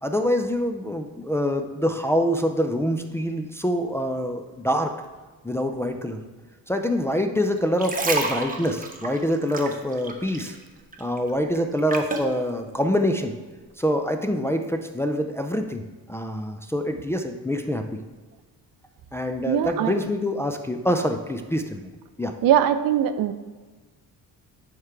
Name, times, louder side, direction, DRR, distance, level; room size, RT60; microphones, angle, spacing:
voice 1, 0.0-4.9 5.4-6.2 6.7-10.6 11.0-13.4 13.8-18.0 19.1-21.8 22.2-22.4, equal, 10° left, 4 dB, 0.3 m, -25 dB
sound 1, 7.6-10.6 10.9-12.3 12.9-13.1, right 3 dB, 25° right, 0.9 m, -30 dB
voice 2, 19.5-19.9 22.4-23.3, right 10 dB, 70° right, 11 dB, 0.6 m, -21 dB
9.6 x 3.7 x 4.5 m, 1.3 s
cardioid pair, 115°, 36 cm